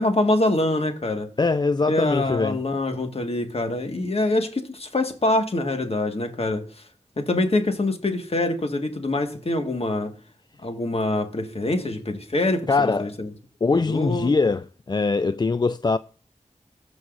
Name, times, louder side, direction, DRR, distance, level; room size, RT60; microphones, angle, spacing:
voice 1, 0.0-1.3 1.9-6.8 7.2-10.1 10.6-13.3 13.7-14.3, left 2 dB, 50° left, 1.8 m, -25 dB
voice 2, 1.4-2.6 12.7-13.1 13.6-16.0, left 4 dB, 35° left, 0.4 m, -22 dB
15.0 x 6.2 x 2.6 m
cardioid pair, 45°, 13 cm